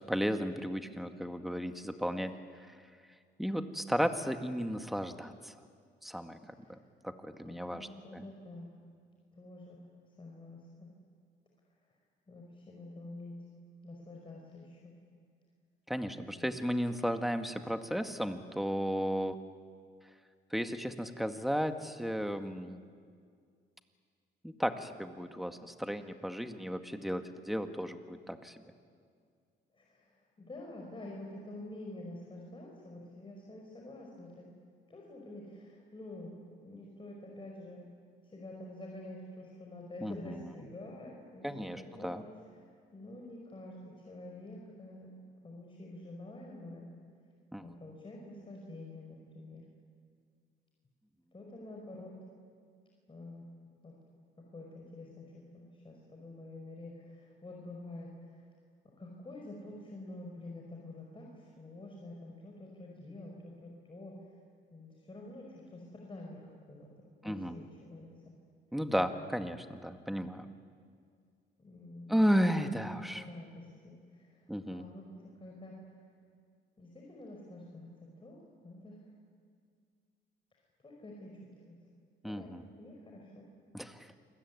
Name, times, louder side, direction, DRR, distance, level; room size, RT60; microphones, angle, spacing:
voice 1, 0.1-2.8 3.4-5.6 6.0-6.4 6.7-6.8 7.0-8.2 15.9-19.4 20.5-22.8 24.4-28.6 40.0-40.1 41.4-42.2 47.5-47.7 67.2-67.6 68.7-70.5 72.1-73.2 74.5-74.9 82.2-82.7 83.7-84.1, equal, ahead, 7 dB, 1.9 m, -34 dB
voice 2, 7.4-8.7 9.3-9.9 10.2-10.9 12.3-13.5 13.8-15.0 16.3-16.5 29.7-34.5 34.9-37.9 38.2-41.5 41.7-42.2 42.9-46.9 47.6-49.7 51.3-52.2 53.1-53.5 53.8-54.0 54.5-58.4 59.0-64.2 64.7-66.4 66.7-66.9 67.2-68.3 71.6-72.6 73.1-75.9 76.8-79.1 80.8-81.7 82.2-83.5, left 1 dB, 25° left, -1 dB, 5.5 m, -48 dB
28.5 x 21.5 x 9.7 m, 2.1 s
cardioid pair, 90°, 20 cm